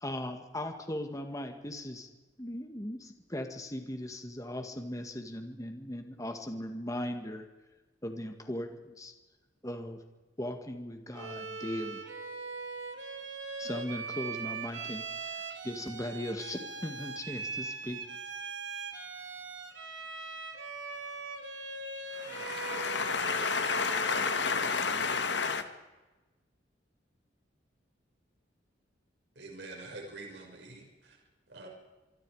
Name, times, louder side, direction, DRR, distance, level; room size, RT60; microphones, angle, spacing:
voice 1, 0.0-2.1 2.4-7.5 8.0-9.1 9.6-10.0 10.4-12.0 13.6-18.0, left 1 dB, 20° left, 5 dB, 2.0 m, -38 dB
Bowed string instrument, 11.1-24.5, right 4 dB, 90° right, 2.9 m, -41 dB
voice 2, 22.1-25.7, left 5 dB, 65° left, 8 dB, 2.1 m, -30 dB
voice 3, 29.4-31.2 31.5-31.7, right 2 dB, 65° right, 1 dB, 5.8 m, -46 dB
26.0 x 24.5 x 5.0 m, 1.2 s
head